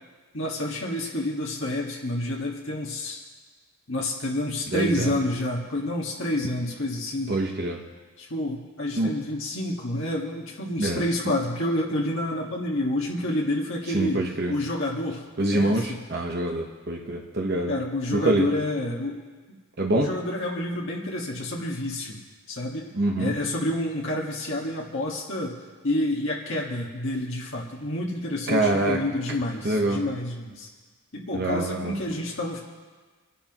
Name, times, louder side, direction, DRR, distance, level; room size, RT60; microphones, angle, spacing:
voice 1, 0.3-3.2 3.9-7.3 8.2-14.2 14.5-15.2 15.5-16.0 17.7-19.6 20.0-22.2 22.5-22.9 23.2-25.6 25.8-30.7 31.1-32.6, left 1 dB, 55° left, -2 dB, 1.6 m, -29 dB
voice 2, 4.7-5.2 7.3-7.8 9.0-9.1 10.8-11.0 13.9-14.5 15.4-17.7 18.1-18.5 19.8-20.1 22.9-23.3 28.5-29.0 29.6-30.0 31.3-31.9, right 2 dB, 45° right, 1 dB, 1.1 m, -25 dB
26.0 x 11.5 x 3.0 m, 1.4 s
head